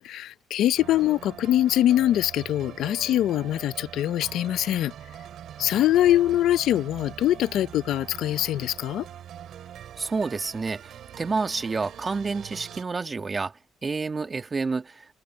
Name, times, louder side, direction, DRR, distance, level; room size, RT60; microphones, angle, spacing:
voice 1, 0.0-4.9 5.6-9.0, left 12 dB, 80° left, 0.5 m, -23 dB
sound 1, 0.8-12.8, right 10 dB, 70° right, 2.9 m, -43 dB
voice 2, 10.0-15.1, right 4 dB, 30° right, 2.0 m, -29 dB
open air
cardioid pair, 90°, 0 cm